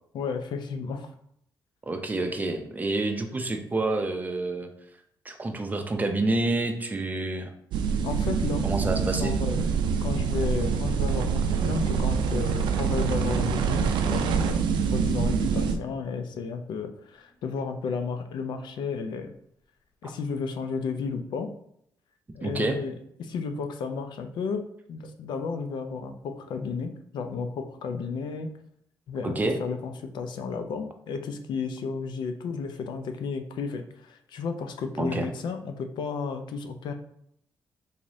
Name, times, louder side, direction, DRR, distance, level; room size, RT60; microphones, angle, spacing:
voice 1, 0.1-1.1 8.0-8.7 9.0-19.3 20.0-21.5 22.3-28.5 29.1-36.9, left 5 dB, 75° left, 7 dB, 0.5 m, -33 dB
voice 2, 1.9-4.7 5.2-7.5 8.6-9.3 20.0-20.1 22.4-22.8 29.2-29.6 35.0-35.3, right 2 dB, 20° right, 5 dB, 0.6 m, -28 dB
sound 1, 7.7-15.7, right 6 dB, 85° right, 0.4 m, -25 dB
Sink (filling or washing), 10.1-17.4, left 1 dB, 30° left, 1.0 m, -46 dB
4.0 x 3.0 x 2.6 m, 0.72 s
cardioid pair, 90°, 8 cm